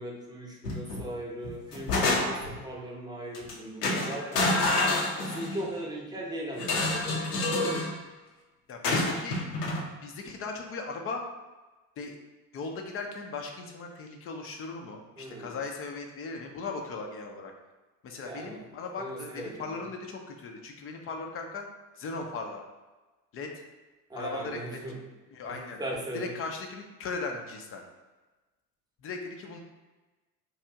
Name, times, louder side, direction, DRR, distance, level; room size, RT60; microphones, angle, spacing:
voice 1, 0.0-4.8 5.2-7.4 15.2-15.6 18.3-18.6 19.0-19.9 24.1-25.0 25.5-26.3, right 1 dB, 10° right, -2 dB, 0.8 m, -38 dB
sound 1, 0.6-1.1 1.4-2.6 3.3-3.5 3.8-5.7 6.6-7.9 8.8-9.8, left 2 dB, 75° left, 0.8 m, -28 dB
voice 2, 8.7-9.4 10.0-11.2 12.0-12.1 12.5-17.5 18.0-21.7 22.0-22.6 23.3-23.5 24.2-24.8 25.3-25.8 26.1-27.8 29.0-29.6, left 4 dB, 30° left, 3 dB, 0.5 m, -38 dB
2.9 x 2.3 x 3.4 m, 1.2 s
hypercardioid pair, 70°, 47 cm